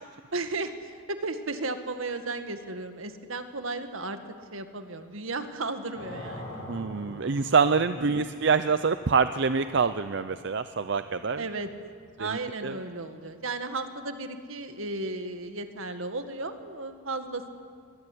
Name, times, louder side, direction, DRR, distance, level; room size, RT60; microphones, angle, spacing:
voice 1, 0.3-4.2 4.5-6.7 7.9-8.1 11.3-11.7 12.2-17.5, right 3 dB, 75° right, 7 dB, 1.9 m, -34 dB
sound 1, 6.0-12.9, left 1 dB, 55° left, 6.3 m, -45 dB
voice 2, 6.7-11.4 12.2-12.8, right 5 dB, 55° right, 11 dB, 0.6 m, -26 dB
23.0 x 21.5 x 9.8 m, 2.1 s
head